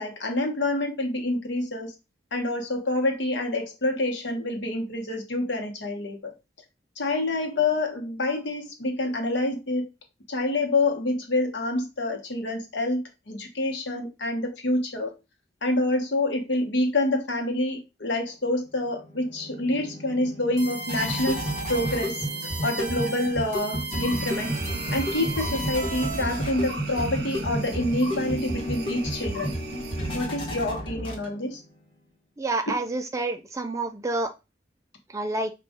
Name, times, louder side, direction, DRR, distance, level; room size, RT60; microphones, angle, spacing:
voice 1, 0.0-1.9 2.3-6.3 7.0-9.8 10.3-15.1 15.6-21.4 21.7-22.3 22.6-24.5 24.9-29.5 30.1-31.6, left 2 dB, 70° left, 3 dB, 1.1 m, -27 dB
sound 1, 18.8-31.6, equal, 25° left, 1.3 m, -32 dB
sound 2, 20.6-26.5, right 2 dB, 40° right, 1.1 m, -35 dB
sound 3, 24.1-30.2, right 4 dB, 60° right, 0.6 m, -41 dB
voice 2, 32.4-34.3 35.1-35.5, right 2 dB, 15° right, 6 dB, 0.4 m, -28 dB
5.2 x 2.5 x 3.6 m, 0.26 s
head